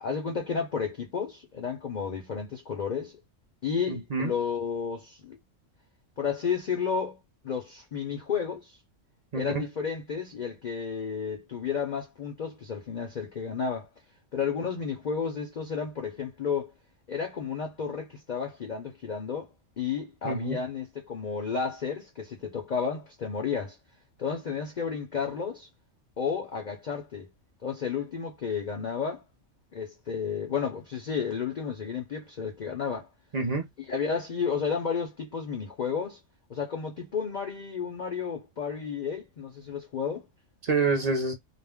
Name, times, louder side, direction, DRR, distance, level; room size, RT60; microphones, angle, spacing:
voice 1, 0.0-3.2 3.6-5.4 6.2-7.2 7.4-8.8 9.3-13.9 14.3-16.7 17.1-19.5 19.8-23.8 24.2-25.7 26.2-27.3 27.6-29.2 29.7-33.1 33.8-36.2 36.5-40.3, left 6 dB, 45° left, 0.6 m, -32 dB
voice 2, 3.9-4.3 9.3-9.6 20.2-20.6 33.3-33.7 40.7-41.3, right 3 dB, 40° right, 0.6 m, -27 dB
2.5 x 2.1 x 3.4 m
omnidirectional pair, 1.3 m